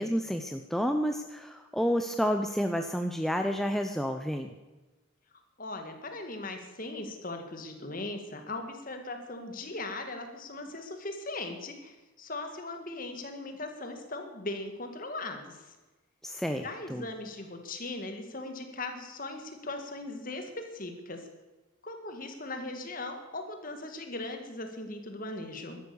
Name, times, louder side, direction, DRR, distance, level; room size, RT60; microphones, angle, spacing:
voice 1, 0.0-4.5 16.2-17.0, equal, ahead, 5 dB, 0.6 m, -30 dB
voice 2, 5.6-15.7 16.6-21.3 21.8-25.8, left 2 dB, 40° left, 5 dB, 1.9 m, -39 dB
13.0 x 11.0 x 7.0 m, 1.1 s
head